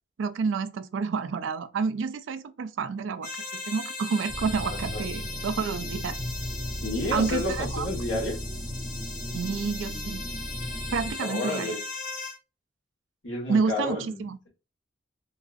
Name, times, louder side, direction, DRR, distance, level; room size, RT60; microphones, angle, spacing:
voice 1, 0.2-6.2 7.1-7.9 8.1-8.2 9.3-10.2 10.9-11.8 13.5-14.4, right 5 dB, 90° right, 0.4 m, -29 dB
sound 1, 3.2-12.4, left 3 dB, 45° left, 1.2 m, -38 dB
sound 2, 4.3-11.1, equal, ahead, 0.8 m, -36 dB
voice 2, 4.7-5.0 6.8-8.4 11.2-11.8 13.2-14.5, left 2 dB, 80° left, 1.4 m, -31 dB
4.0 x 2.6 x 2.4 m
head